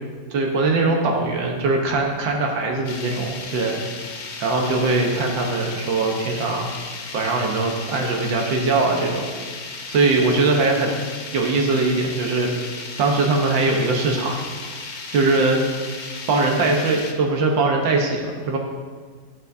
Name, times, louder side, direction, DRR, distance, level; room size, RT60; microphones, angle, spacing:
voice 1, 0.3-3.8 4.4-6.7 7.1-9.3 9.9-11.0 11.3-12.5 13.0-14.4 15.1-15.6 16.3-18.6, right 3 dB, 75° right, 0 dB, 1.8 m, -21 dB
sound 1, 2.9-17.1, left 4 dB, 85° left, 1.8 m, -35 dB
15.0 x 6.9 x 2.7 m, 1.5 s
omnidirectional pair, 2.0 m